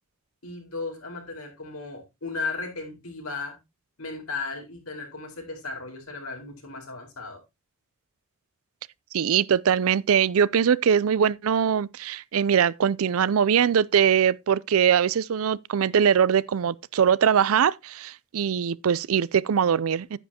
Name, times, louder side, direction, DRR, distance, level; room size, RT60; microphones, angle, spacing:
voice 1, 0.4-3.6 4.0-7.4, left 4 dB, 85° left, 4.4 m, -35 dB
voice 2, 9.1-20.2, right 8 dB, 75° right, 0.4 m, -22 dB
10.0 x 10.0 x 2.8 m
head